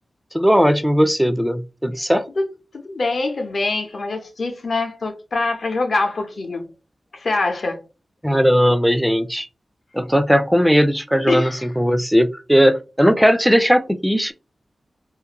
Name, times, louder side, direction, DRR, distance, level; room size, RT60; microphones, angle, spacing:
voice 1, 0.3-2.2 8.2-9.5 9.9-14.3, equal, ahead, 0.3 m, -17 dB
voice 2, 2.7-6.7 7.1-7.8 11.3-11.7, left 3 dB, 60° left, 0.7 m, -24 dB
2.5 x 2.4 x 2.8 m
wide cardioid pair, 125°, 0 cm